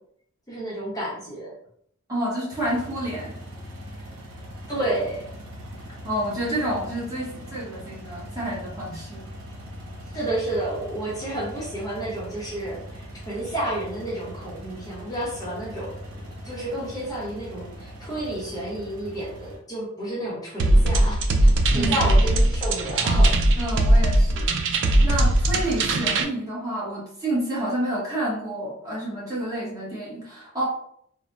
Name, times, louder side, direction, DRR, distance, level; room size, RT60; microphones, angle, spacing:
voice 1, 0.5-1.5 4.7-5.2 10.1-21.2 21.7-23.3, right 1 dB, 15° left, -7 dB, 0.8 m, -30 dB
voice 2, 2.1-3.4 5.9-9.2 21.7-21.9 23.6-24.5 25.0-30.7, right 1 dB, 15° right, -7 dB, 1.0 m, -29 dB
sound 1, 2.5-19.6, equal, 90° right, 0.8 m, -40 dB
sound 2, 20.6-26.2, right 1 dB, 60° right, 0.4 m, -19 dB
3.2 x 2.1 x 2.5 m, 0.67 s
head